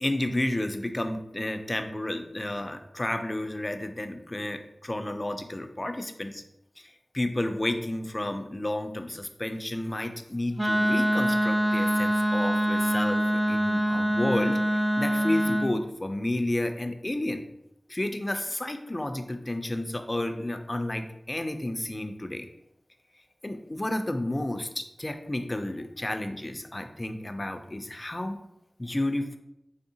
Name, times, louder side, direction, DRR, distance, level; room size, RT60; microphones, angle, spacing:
voice 1, 0.0-6.4 6.8-17.4 17.9-22.5 23.4-28.4 28.8-29.4, left 1 dB, 35° left, 7 dB, 0.4 m, -31 dB
Wind instrument woodwind instrument, 10.6-15.7, equal, 20° right, 0.8 m, -24 dB
3.5 x 3.5 x 2.7 m, 0.82 s
cardioid pair, 40°, 0 cm